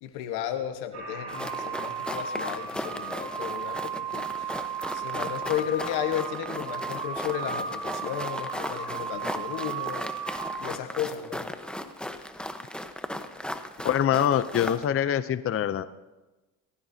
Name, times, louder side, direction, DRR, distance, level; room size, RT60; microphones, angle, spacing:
voice 1, 0.0-4.6 4.9-10.1 10.6-11.5, left 10 dB, 85° left, 7 dB, 1.4 m, -34 dB
sound 1, 0.9-10.6, right 6 dB, 45° right, 5.1 m, -35 dB
sound 2, 1.3-14.9, left 1 dB, ahead, 1.0 m, -37 dB
voice 2, 13.8-15.8, left 10 dB, 35° left, 13 dB, 0.6 m, -24 dB
19.0 x 15.5 x 2.8 m, 1.1 s
supercardioid pair, 85°, 37 cm